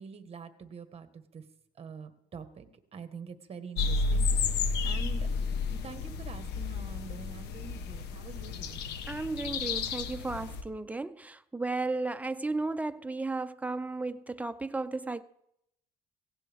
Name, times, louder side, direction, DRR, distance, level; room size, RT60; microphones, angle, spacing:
voice 1, 0.0-1.4 1.8-4.3 4.8-5.3 5.7-8.9, right 5 dB, 35° right, 1.5 m, -45 dB
sound 1, 3.8-10.6, left 4 dB, 80° left, 1.4 m, -32 dB
voice 2, 9.1-15.2, right 3 dB, 10° right, 0.6 m, -34 dB
17.0 x 17.0 x 3.6 m
cardioid pair, 110°, 17 cm